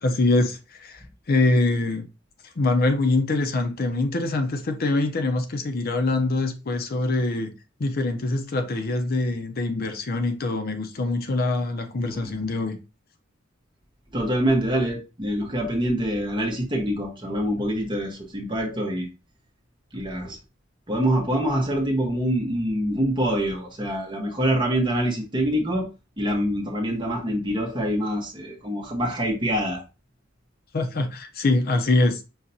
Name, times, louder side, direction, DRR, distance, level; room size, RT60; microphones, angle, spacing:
voice 1, 0.0-2.1 2.4-7.5 7.8-12.8 30.7-32.2, left 2 dB, 50° left, 0.6 m, -24 dB
voice 2, 14.1-19.1 19.9-20.4 20.9-25.9 26.2-29.8, equal, 25° right, 1.1 m, -25 dB
5.5 x 2.8 x 2.6 m
head